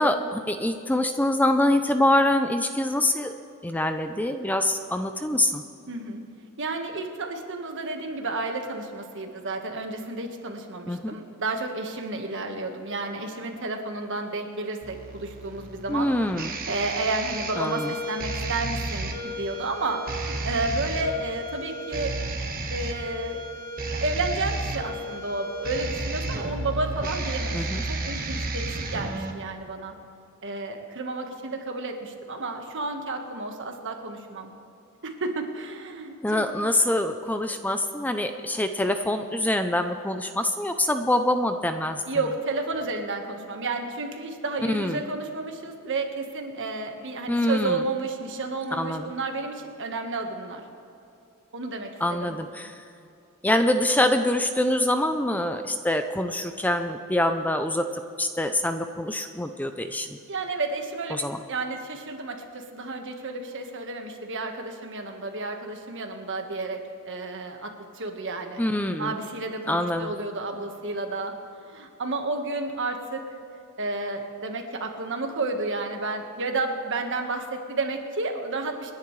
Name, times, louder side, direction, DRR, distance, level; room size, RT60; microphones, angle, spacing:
voice 1, 0.0-3.3 3.6-5.6 10.9-11.1 15.9-16.5 17.6-17.9 27.5-27.8 36.2-42.0 44.7-45.0 47.3-47.8 48.7-49.1 52.0-52.8 53.4-60.1 61.1-61.4 68.6-69.2 69.7-70.1, left 1 dB, 10° left, 7 dB, 0.5 m, -25 dB
voice 2, 5.9-6.2 6.6-16.1 16.7-22.1 22.7-23.4 23.9-29.9 30.4-34.5 35.0-36.5 42.1-50.6 51.5-51.9 52.2-52.4 60.3-68.6 69.0-71.4 71.7-73.2 73.8-78.9, right 3 dB, 60° right, 4 dB, 1.5 m, -31 dB
sound 1, 14.8-29.3, right 2 dB, 45° right, 1.4 m, -32 dB
28.0 x 10.5 x 3.3 m, 2.7 s
head